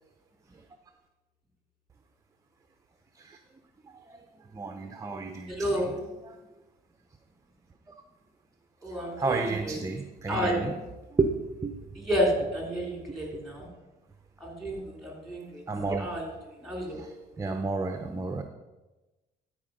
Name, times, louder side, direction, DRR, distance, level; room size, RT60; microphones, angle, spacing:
voice 1, 3.8-6.4 8.8-10.8 11.1-12.0 13.1-13.7 15.7-16.1 16.8-18.4, right 3 dB, 20° right, 6 dB, 0.7 m, -33 dB
voice 2, 5.5-6.0 8.8-9.7 10.3-10.6 12.0-13.7 14.4-15.6 16.0-16.2 16.6-17.0, equal, ahead, -1 dB, 3.3 m, -30 dB
12.5 x 4.9 x 5.3 m, 1.1 s
cardioid pair, 110°, 17 cm